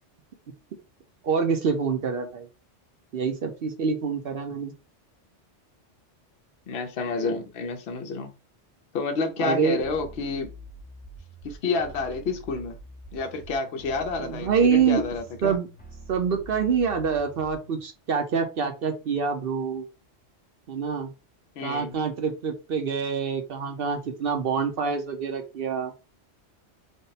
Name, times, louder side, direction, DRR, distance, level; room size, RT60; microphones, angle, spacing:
voice 1, 1.2-2.5 3.1-4.7 9.4-9.8 14.2-15.0 15.4-15.7 16.1-19.8 20.7-21.1 21.6-25.9, right 6 dB, 55° right, 0.8 m, -26 dB
voice 2, 6.7-8.3 8.9-10.5 11.4-12.8 13.1-15.6 21.6-22.0, left 4 dB, 65° left, 0.9 m, -29 dB
sound 1, 9.8-17.8, right 1 dB, 10° left, 0.6 m, -46 dB
3.5 x 2.1 x 4.0 m
omnidirectional pair, 1.2 m